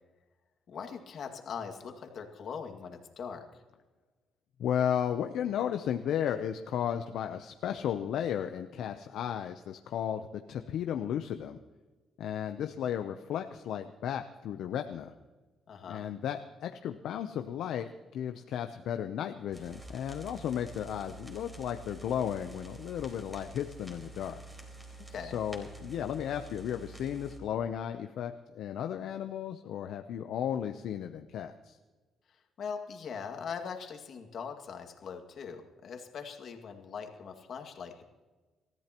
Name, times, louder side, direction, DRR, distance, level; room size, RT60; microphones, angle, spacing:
voice 1, 0.7-3.6 15.7-16.0 25.1-25.4 32.3-38.0, left 6 dB, 60° left, 4 dB, 2.1 m, -41 dB
voice 2, 4.6-11.6 12.2-15.1 15.9-24.4 25.2-31.8, left 9 dB, 80° left, 7 dB, 0.7 m, -34 dB
sound 1, 19.5-27.4, right 2 dB, 10° right, 4.1 m, -48 dB
27.5 x 14.0 x 3.0 m, 1.3 s
cardioid pair, 90°, 0 cm